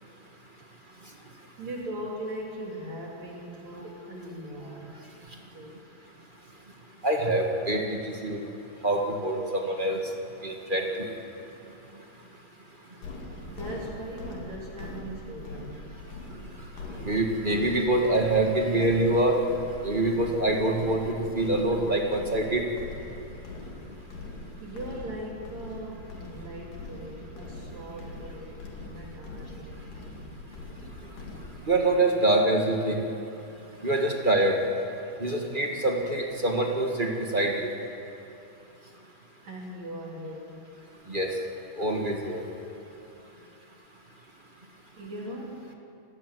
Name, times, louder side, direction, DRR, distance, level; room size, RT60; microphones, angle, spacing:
voice 1, 1.6-5.0 5.5-5.8 13.5-15.8 24.6-30.0 39.4-40.6 45.0-45.7, right 1 dB, 55° right, -2 dB, 4.0 m, -39 dB
voice 2, 7.0-7.8 8.2-8.4 8.8-10.0 10.4-11.1 17.0-19.4 19.8-22.6 31.7-33.0 33.8-34.5 35.2-37.7 41.1-41.3 41.8-42.4, right 2 dB, 25° right, 1 dB, 1.2 m, -25 dB
sound 1, 13.0-31.6, left 2 dB, 75° left, 4.1 m, -42 dB
29.5 x 18.0 x 7.9 m, 2.8 s
omnidirectional pair, 3.9 m